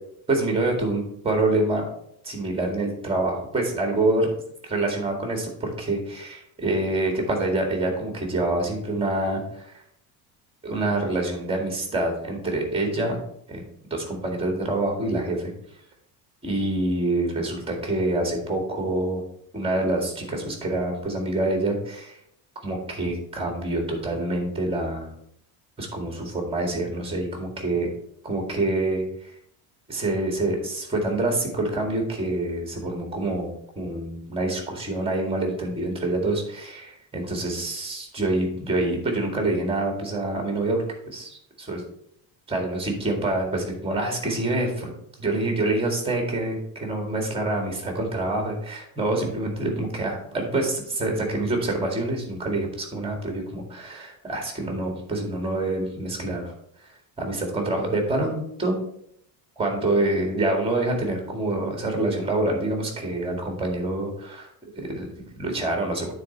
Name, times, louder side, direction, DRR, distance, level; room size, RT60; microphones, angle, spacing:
voice 1, 0.3-1.9 2.2-4.4 4.6-9.7 10.6-13.2 13.5-15.5 16.4-19.2 19.5-22.2 22.6-25.1 25.8-27.9 28.2-29.3 29.9-41.8 42.5-44.7 45.2-56.5 57.2-58.8 59.6-64.5 64.8-66.1, right 2 dB, 15° right, 2 dB, 2.0 m, -26 dB
9.4 x 4.1 x 4.4 m, 0.72 s
cardioid pair, 145°, 41 cm